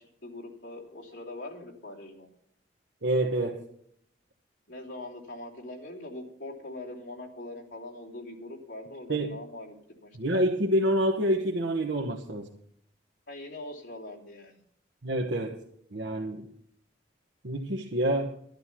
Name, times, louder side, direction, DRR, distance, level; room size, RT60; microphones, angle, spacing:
voice 1, 0.0-2.3 4.7-9.7 10.0-10.3 13.3-14.6, left 2 dB, 80° left, -3 dB, 3.0 m, -42 dB
voice 2, 3.0-3.6 9.1-9.4 10.1-12.5 15.0-15.6 15.9-16.5 17.4-18.3, right 1 dB, 80° right, 0 dB, 1.3 m, -27 dB
12.0 x 11.5 x 6.0 m, 0.70 s
head